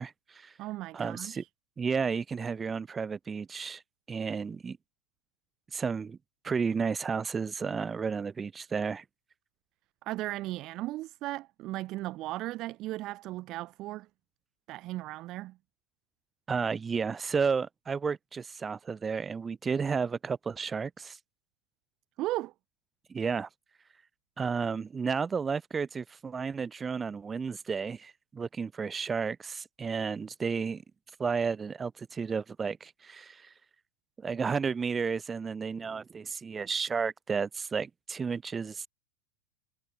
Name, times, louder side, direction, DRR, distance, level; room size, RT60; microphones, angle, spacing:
voice 1, 0.0-0.5 0.9-1.4 1.8-3.8 4.1-4.8 5.7-6.2 6.4-9.0 16.5-21.2 23.1-23.5 24.4-30.8 31.2-33.5 34.2-38.9, right 5 dB, 20° right, 2.1 m, -32 dB
voice 2, 0.6-1.5 10.0-14.1 14.7-15.6 22.2-22.5, right 17 dB, 40° right, 7.0 m, -36 dB
figure-of-eight pair, 85°, 0 cm